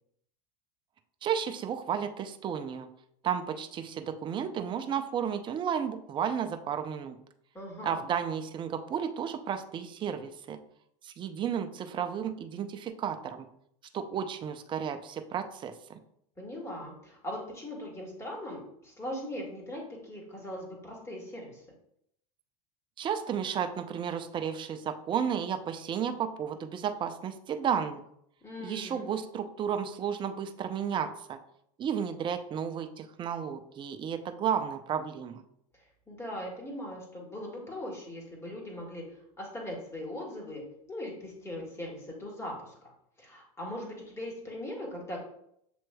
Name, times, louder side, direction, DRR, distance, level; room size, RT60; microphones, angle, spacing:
voice 1, 1.2-2.9 3.2-7.2 7.8-10.6 11.0-13.5 13.9-16.0 23.0-28.0 28.6-31.4 31.8-35.4, right 8 dB, 25° right, 7 dB, 0.5 m, -33 dB
voice 2, 7.5-8.0 16.4-21.6 28.4-29.1 36.1-39.0 39.4-40.6 40.9-42.9 43.2-45.2, left 1 dB, 15° left, -2 dB, 1.7 m, -40 dB
7.7 x 3.0 x 2.2 m, 0.73 s
supercardioid pair, 120°, 20 cm